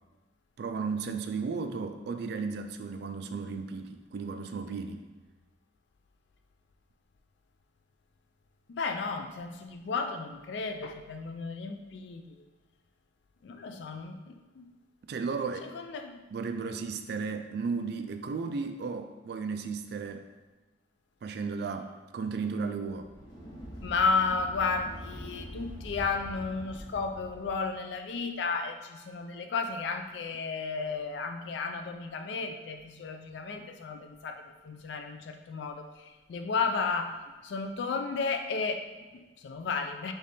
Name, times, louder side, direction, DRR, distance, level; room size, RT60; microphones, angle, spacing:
voice 1, 0.6-5.0 15.1-15.7 16.3-20.3 21.2-23.1, right 5 dB, 55° right, 8 dB, 0.3 m, -34 dB
voice 2, 8.7-12.4 13.4-14.7 15.6-16.2 23.8-40.1, left 4 dB, 65° left, 6 dB, 0.3 m, -33 dB
sound 1, 22.9-27.7, equal, 90° left, 1.4 m, -44 dB
3.3 x 3.1 x 4.0 m, 1.2 s
head